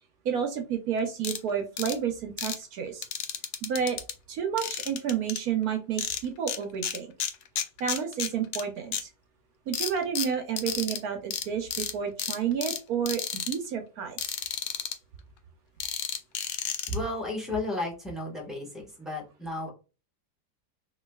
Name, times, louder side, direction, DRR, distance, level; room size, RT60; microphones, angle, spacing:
voice 1, 0.2-3.0 3.6-4.0 4.3-7.1 7.8-9.1 9.7-14.2, right 7 dB, 70° right, 5 dB, 1.0 m, -30 dB
sound 1, 1.2-1.4 1.8-2.0 2.4-2.6 3.0-4.1 4.6-5.4 6.0-6.6 6.8-8.6 8.9-9.0 9.7-11.0 11.3-11.4 11.7-11.9 12.2-12.8 13.1-13.6 14.2-14.9 15.8-17.0, left 8 dB, 90° left, 0.6 m, -32 dB
voice 2, 16.9-19.7, left 2 dB, ahead, -2 dB, 1.0 m, -33 dB
3.9 x 3.0 x 2.2 m, 0.32 s
omnidirectional pair, 1.8 m